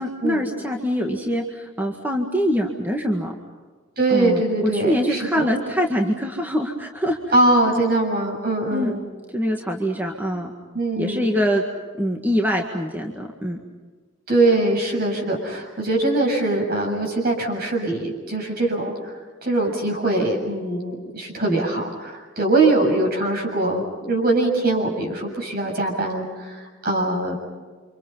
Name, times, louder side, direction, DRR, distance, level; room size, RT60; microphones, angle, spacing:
voice 1, 0.0-3.3 4.1-7.2 7.7-7.8 8.7-9.0 9.3-10.5 11.0-11.6 12.0-13.6, equal, 10° right, 1 dB, 1.9 m, -24 dB
voice 2, 4.0-5.5 7.3-9.0 10.7-11.3 14.3-19.1 19.4-27.4, right 2 dB, 50° right, 1 dB, 7.2 m, -22 dB
30.0 x 26.5 x 5.7 m, 1.4 s
head